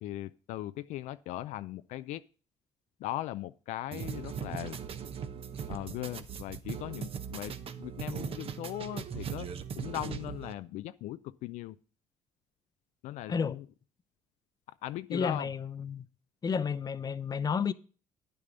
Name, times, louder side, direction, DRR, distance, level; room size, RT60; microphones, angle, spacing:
voice 1, 0.0-2.2 3.0-4.8 5.7-9.5 9.8-11.8 13.0-13.6 14.8-15.5, left 14 dB, 75° left, 0.4 m, -39 dB
sound 1, 3.9-10.5, right 7 dB, 50° right, 1.0 m, -39 dB
voice 2, 15.1-16.1 16.4-17.7, left 6 dB, 30° left, 0.7 m, -31 dB
9.8 x 6.8 x 5.2 m
supercardioid pair, 85°, 13 cm